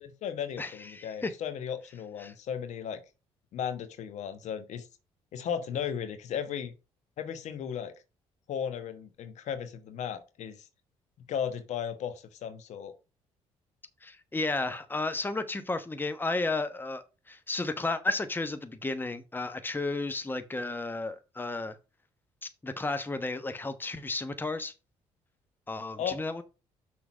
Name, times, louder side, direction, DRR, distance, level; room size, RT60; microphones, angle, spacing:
voice 1, 0.0-3.0 3.5-4.9 5.3-6.7 7.2-7.9 8.5-10.7 11.3-12.9 26.0-26.2, left 8 dB, 70° left, 1.2 m, -35 dB
voice 2, 0.6-1.3 2.2-2.3 14.0-21.8 22.4-24.7 25.7-26.4, left 2 dB, 15° left, 1.0 m, -33 dB
6.2 x 3.9 x 6.1 m
supercardioid pair, 75°, 12 cm